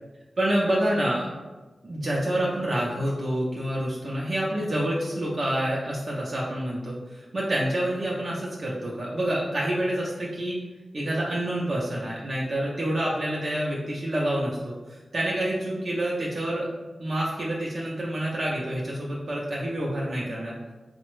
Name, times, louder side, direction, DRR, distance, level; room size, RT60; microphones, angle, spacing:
voice 1, 0.4-1.3 1.8-10.6 10.9-16.7 17.0-20.5, right 1 dB, 55° right, -5 dB, 0.5 m, -27 dB
3.3 x 2.0 x 3.0 m, 1.2 s
wide cardioid pair, 85°, 0 cm